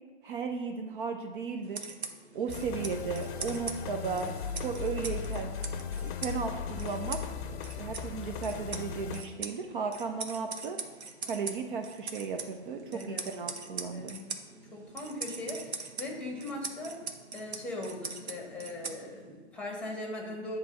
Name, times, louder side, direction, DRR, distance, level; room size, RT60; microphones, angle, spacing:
voice 1, 0.2-1.8 2.3-5.5 6.0-7.2 7.5-10.8 11.2-14.1, right 5 dB, 50° right, 5 dB, 0.7 m, -35 dB
sound 1, 1.6-19.4, right 4 dB, 85° right, 1.0 m, -43 dB
sound 2, 2.5-9.2, left 6 dB, 50° left, 0.6 m, -37 dB
voice 2, 12.9-13.3 13.9-14.2 14.7-17.0 17.3-20.6, left 2 dB, 5° left, -1 dB, 1.7 m, -39 dB
9.5 x 3.4 x 5.5 m, 1.3 s
hypercardioid pair, 125°, 32 cm